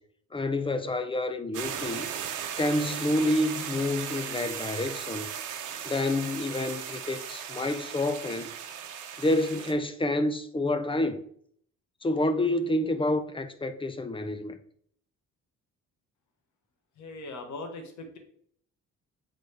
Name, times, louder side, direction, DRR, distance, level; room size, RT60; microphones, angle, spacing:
voice 1, 0.3-2.1 2.6-5.3 5.8-8.5 9.2-11.2 12.0-14.6, left 1 dB, 15° left, 0.6 m, -28 dB
sound 1, 1.5-9.7, right 8 dB, 80° right, 0.9 m, -37 dB
voice 2, 17.0-18.2, left 2 dB, 70° left, 1.4 m, -40 dB
8.0 x 4.0 x 3.3 m
cardioid pair, 90°, 30 cm